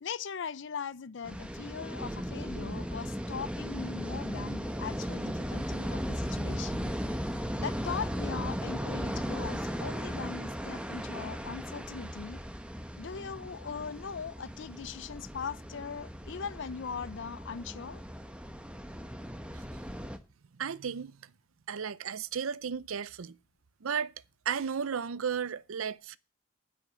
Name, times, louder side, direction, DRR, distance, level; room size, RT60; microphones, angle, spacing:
voice 1, 0.0-6.9 7.3-12.4 13.0-18.0, left 6 dB, 60° left, 0.5 m, -40 dB
sound 1, 1.2-20.2, equal, 5° right, 1.0 m, -37 dB
voice 2, 20.5-21.3 21.7-23.4 23.8-24.1 24.5-26.2, right 7 dB, 85° right, 0.6 m, -34 dB
9.8 x 6.0 x 8.5 m
head